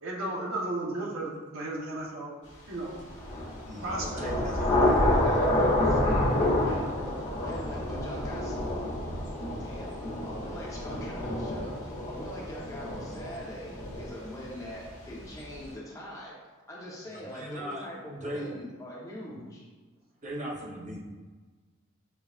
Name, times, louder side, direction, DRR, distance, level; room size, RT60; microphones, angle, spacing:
voice 1, 0.0-2.3 2.7-3.0 3.8-4.8, right 2 dB, 80° right, -3 dB, 0.9 m, -35 dB
Thunder / Rain, 3.1-14.7, left 1 dB, 35° left, 1.1 m, -28 dB
voice 2, 3.6-5.4 17.3-18.5 19.3-19.4 20.2-21.0, equal, 35° right, -2 dB, 0.7 m, -39 dB
voice 3, 4.4-9.0 9.6-9.9 10.2-11.8 12.1-16.3 16.7-19.6, equal, 15° left, -5 dB, 0.8 m, -42 dB
6.7 x 2.4 x 2.4 m, 1.4 s
head